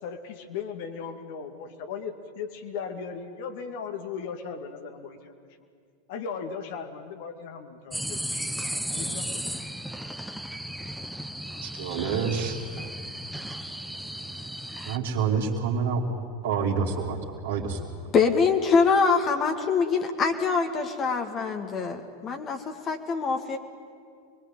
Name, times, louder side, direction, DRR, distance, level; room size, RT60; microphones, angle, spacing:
voice 1, 0.0-5.7 6.1-8.4 8.9-9.5, left 6 dB, 55° left, 5 dB, 2.3 m, -37 dB
sound 1, 7.9-15.0, equal, ahead, 1.0 m, -35 dB
voice 2, 11.6-12.6 14.9-16.0 16.4-17.2 17.4-17.8, right 6 dB, 60° right, -5 dB, 2.8 m, -27 dB
voice 3, 18.1-23.6, left 5 dB, 30° left, 4 dB, 2.0 m, -24 dB
26.0 x 21.5 x 9.0 m, 2.2 s
figure-of-eight pair, 90°, 0 cm